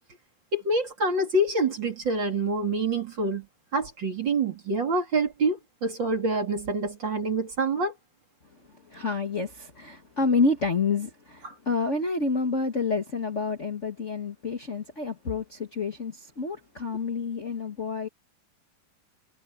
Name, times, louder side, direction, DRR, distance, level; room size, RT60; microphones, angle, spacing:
voice 1, 0.5-3.5 3.7-7.9 11.4-11.5, right 2 dB, 35° right, 2.9 m, -26 dB
voice 2, 8.9-18.1, left 4 dB, 90° left, 0.6 m, -28 dB
omnidirectional pair, 4.2 m